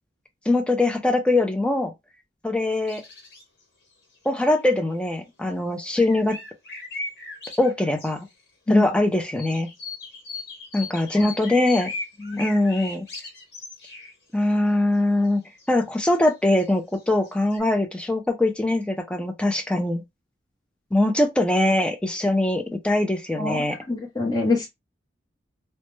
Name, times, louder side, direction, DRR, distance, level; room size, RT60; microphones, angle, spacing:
voice 1, 0.5-1.9 2.4-3.0 4.3-6.4 7.6-8.3 8.7-9.7 10.7-11.9 12.4-13.1 14.3-15.4 15.7-20.0 20.9-23.8, left 1 dB, 5° left, 0.4 m, -22 dB
sound 1, 2.7-3.6 3.9-4.0 4.3-5.0 6.0-8.3 9.3-14.1 15.2-15.3 15.6-17.6, left 3 dB, 70° left, 1.2 m, -38 dB
voice 2, 23.4-24.7, left 2 dB, 20° left, 0.8 m, -25 dB
2.1 x 2.0 x 3.0 m
head